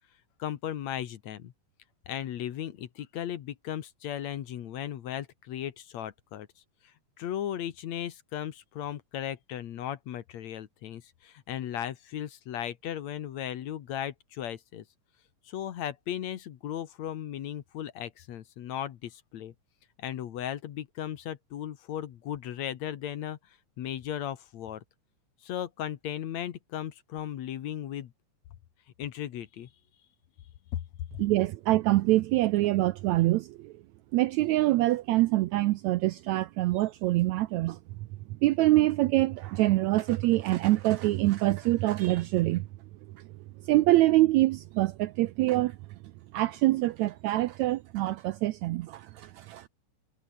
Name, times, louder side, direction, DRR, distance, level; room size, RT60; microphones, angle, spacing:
voice 1, 0.4-1.5 2.1-6.5 7.2-14.8 15.5-19.5 20.0-23.4 23.8-24.8 25.4-28.1 29.0-29.7 30.7-30.8, left 10 dB, 65° left, 2.3 m, -36 dB
voice 2, 31.2-33.7 34.1-37.8 38.4-42.7 43.1-43.2 43.7-45.8 46.3-49.7, right 17 dB, 85° right, 1.6 m, -25 dB
omnidirectional pair, 3.8 m